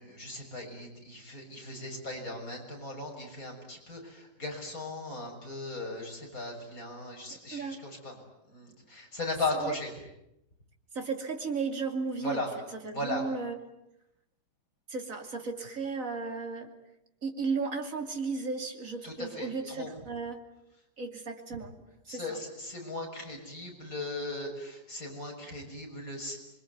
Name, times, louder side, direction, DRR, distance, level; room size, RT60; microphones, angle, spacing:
voice 1, 0.0-8.2 8.5-9.9 12.2-12.5 12.9-13.2 19.0-19.9 22.1-26.4, left 2 dB, 50° left, 1 dB, 7.1 m, -37 dB
voice 2, 7.3-7.8 9.6-9.7 10.9-12.4 12.8-13.6 14.9-16.7 17.2-20.4 21.0-21.8 22.1-22.2, right 4 dB, 50° right, 4 dB, 3.2 m, -34 dB
27.0 x 23.5 x 9.4 m, 0.86 s
omnidirectional pair, 1.8 m